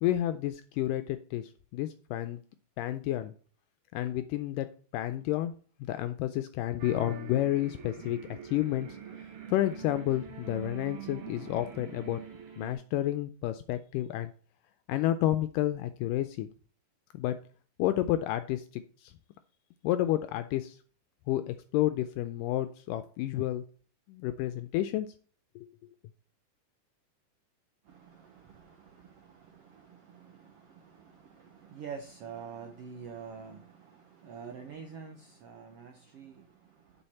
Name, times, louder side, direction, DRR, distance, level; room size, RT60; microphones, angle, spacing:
voice 1, 0.0-2.4 2.8-3.3 3.9-12.2 12.6-14.3 14.9-16.5 17.1-17.4 17.8-19.1 19.8-20.8 21.3-23.7 24.1-25.1 25.6-25.7, left 13 dB, 80° left, 2.1 m, -31 dB
sound 1, 6.8-12.7, right 8 dB, 50° right, 2.0 m, -44 dB
voice 2, 27.8-37.0, right 6 dB, 80° right, 1.3 m, -47 dB
9.0 x 6.9 x 4.2 m
omnidirectional pair, 4.0 m